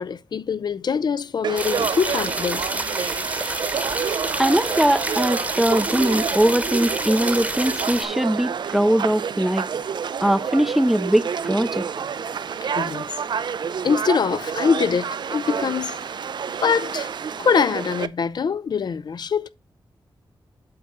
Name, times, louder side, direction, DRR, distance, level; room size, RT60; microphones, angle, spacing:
voice 1, 0.0-2.7 10.4-10.5 12.8-13.1 13.8-15.9 16.6-17.1 17.4-19.5, left 6 dB, 60° left, 0.5 m, -23 dB
Conversation / Crowd, 1.4-18.1, right 7 dB, 60° right, 0.5 m, -29 dB
sound 1, 1.6-8.1, right 2 dB, 15° right, 1.0 m, -28 dB
voice 2, 4.4-9.7 10.2-11.9, right 1 dB, ahead, 0.5 m, -21 dB
sound 2, 7.8-17.8, left 5 dB, 80° left, 2.3 m, -51 dB
7.8 x 3.7 x 5.3 m
wide cardioid pair, 90°, 8 cm